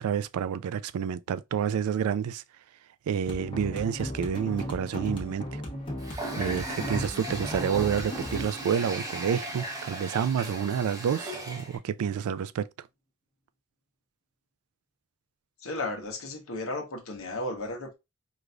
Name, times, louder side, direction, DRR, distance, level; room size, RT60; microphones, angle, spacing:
voice 1, 0.0-2.4 3.1-5.6 6.4-12.7, right 7 dB, 90° right, 0.3 m, -29 dB
sound 1, 3.3-10.2, equal, 25° left, 1.0 m, -36 dB
Water tap faucet, 6.0-11.8, right 1 dB, 15° right, 0.7 m, -37 dB
voice 2, 15.6-18.0, left 2 dB, 70° left, 1.0 m, -34 dB
4.8 x 2.5 x 2.4 m
head